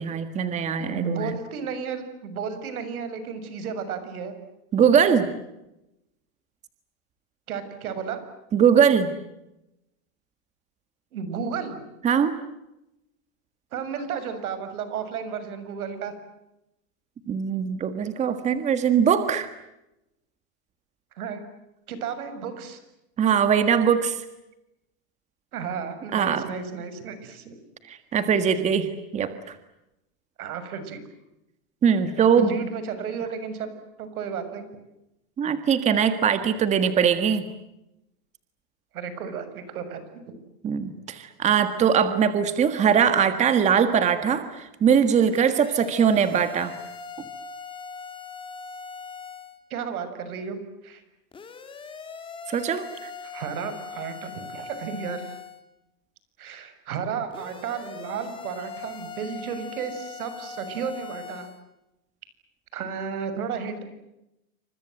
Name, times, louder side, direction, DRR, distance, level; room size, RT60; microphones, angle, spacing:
voice 1, 0.0-1.3 4.7-5.3 8.5-9.1 12.0-12.3 17.3-19.5 23.2-24.2 26.1-26.4 27.9-29.3 31.8-32.5 35.4-37.4 40.6-46.7 52.5-53.1, right 7 dB, 15° right, 10 dB, 1.7 m, -21 dB
voice 2, 0.8-4.3 7.5-8.2 11.1-11.8 13.7-16.1 21.2-21.4 21.9-22.8 25.5-27.5 28.4-28.5 30.4-31.0 32.4-33.7 34.0-34.7 38.9-40.0 40.3-40.4 49.7-50.6 50.8-51.0 53.2-55.4 56.4-61.5 62.7-63.8, right 6 dB, 85° right, 10 dB, 7.1 m, -33 dB
sound 1, 45.3-49.6 51.3-55.6 57.3-61.6, left 5 dB, 10° left, 2.4 m, -40 dB
29.5 x 25.5 x 7.8 m, 0.90 s
supercardioid pair, 165°, 43 cm